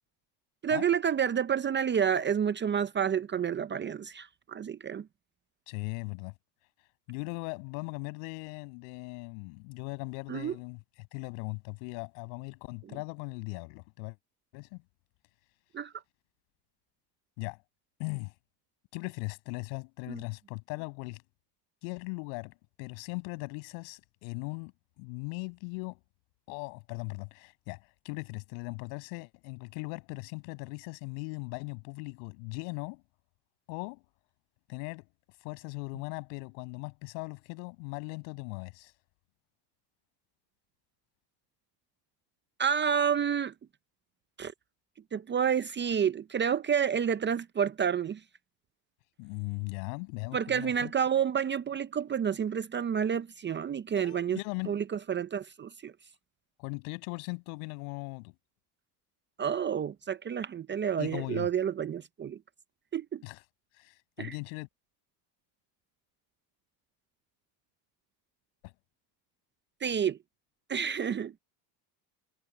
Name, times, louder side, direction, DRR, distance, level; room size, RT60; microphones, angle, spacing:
voice 1, 0.6-5.1 10.3-10.5 15.7-15.9 20.1-20.2 42.6-43.5 44.4-44.5 45.1-48.2 50.3-54.4 54.7-55.9 59.4-62.4 62.9-63.2 64.2-64.4 69.8-70.2 70.7-71.3, right 8 dB, 25° right, 0.6 m, -29 dB
voice 2, 5.7-6.3 7.1-14.2 14.5-14.8 17.4-17.6 18.0-18.3 18.9-21.2 21.8-24.7 25.0-26.0 26.5-27.8 28.0-33.0 33.7-34.0 34.7-35.0 35.4-38.9 49.2-50.9 53.9-54.7 56.6-58.3 61.0-61.5 63.2-63.4 63.8-64.7 68.6-68.7, left 38 dB, 80° left, 6.6 m, -39 dB
supercardioid pair, 115°, 50 cm